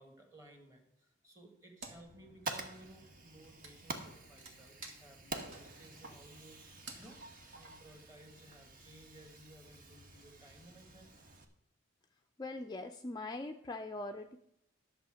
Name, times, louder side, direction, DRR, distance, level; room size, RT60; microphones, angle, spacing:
voice 1, 0.0-11.1, right 1 dB, 15° right, 3 dB, 1.9 m, -58 dB
Wood, 1.8-2.2 2.4-8.0, right 3 dB, 65° right, 1.9 m, -53 dB
Fire, 2.0-11.5, right 2 dB, 45° right, 1.2 m, -48 dB
voice 2, 12.4-14.4, left 2 dB, 20° left, 6 dB, 0.4 m, -42 dB
11.0 x 6.9 x 5.0 m, 0.78 s
head